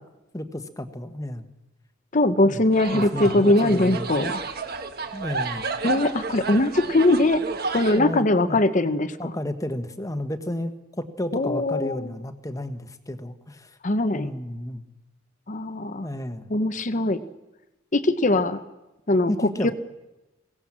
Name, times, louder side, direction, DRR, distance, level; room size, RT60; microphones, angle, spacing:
voice 1, 0.3-1.5 2.5-2.6 2.9-4.1 5.1-5.7 7.9-8.6 9.2-13.8 14.1-14.8 16.0-16.5 19.3-19.7, left 1 dB, 15° left, 9 dB, 1.3 m, -32 dB
voice 2, 2.1-4.3 5.8-7.4 7.7-9.3 11.3-12.1 13.8-14.3 15.5-16.1 16.5-17.2 17.9-18.6 19.1-19.7, left 2 dB, 40° left, 10 dB, 0.9 m, -21 dB
sound 1, 2.7-8.0, right 4 dB, 50° right, 1.4 m, -31 dB
23.0 x 17.5 x 7.5 m, 1.0 s
head